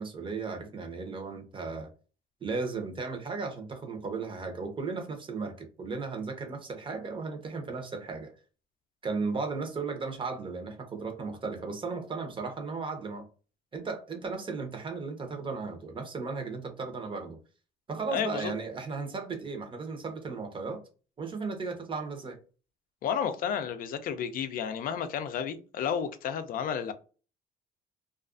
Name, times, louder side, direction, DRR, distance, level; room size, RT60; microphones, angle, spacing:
voice 1, 0.0-1.9 2.4-8.3 9.0-13.2 13.7-17.4 17.9-20.8 21.2-22.4, right 4 dB, 30° right, 0.7 m, -35 dB
voice 2, 18.1-18.5 23.0-26.9, left 8 dB, 60° left, 0.4 m, -32 dB
2.4 x 2.3 x 2.4 m
cardioid pair, 110°, 17 cm